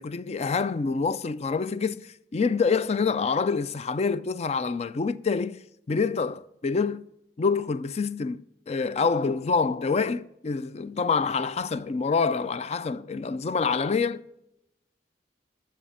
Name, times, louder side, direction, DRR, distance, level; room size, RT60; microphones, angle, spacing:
voice 1, 0.0-5.6 5.9-7.0 7.4-14.2, left 5 dB, 40° left, 0.4 m, -26 dB
12.5 x 7.1 x 5.6 m
head